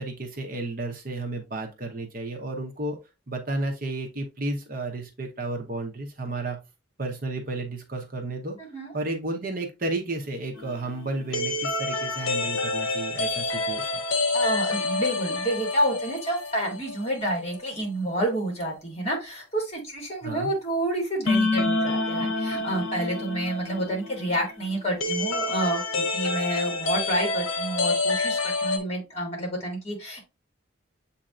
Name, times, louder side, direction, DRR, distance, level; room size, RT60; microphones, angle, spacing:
voice 1, 0.0-3.0 3.3-6.6 7.0-8.6 8.9-13.9 20.2-20.5, right 2 dB, 45° right, 3 dB, 0.8 m, -32 dB
voice 2, 8.6-8.9 14.3-30.2, right 1 dB, 30° left, 1 dB, 1.8 m, -29 dB
sound 1, 10.5-17.3 17.5-17.6 21.3-28.8, left 2 dB, 80° left, 0.8 m, -28 dB
7.5 x 2.8 x 2.4 m, 0.26 s
head